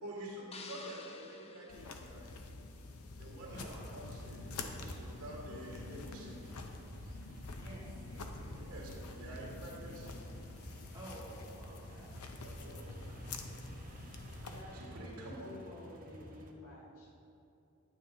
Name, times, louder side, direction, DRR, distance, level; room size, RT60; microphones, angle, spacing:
voice 1, 0.0-2.3 3.1-3.7 3.9-4.5 4.8-6.6 8.7-10.5 11.7-11.8 12.4-13.6 14.7-15.6, right 1 dB, 80° right, -5 dB, 2.0 m, -48 dB
sound 1, 0.5-2.8, left 4 dB, 30° left, 0.4 m, -52 dB
sound 2, 1.7-14.6, left 3 dB, 90° left, 0.6 m, -47 dB
sound 3, 3.4-16.5, right 1 dB, 40° right, 0.7 m, -53 dB
voice 2, 3.5-3.9 7.6-9.0 10.9-12.1, right 1 dB, 20° right, -8 dB, 1.9 m, -52 dB
voice 3, 14.4-17.1, left 1 dB, 70° left, -5 dB, 2.0 m, -51 dB
9.1 x 8.9 x 2.7 m, 2.7 s
head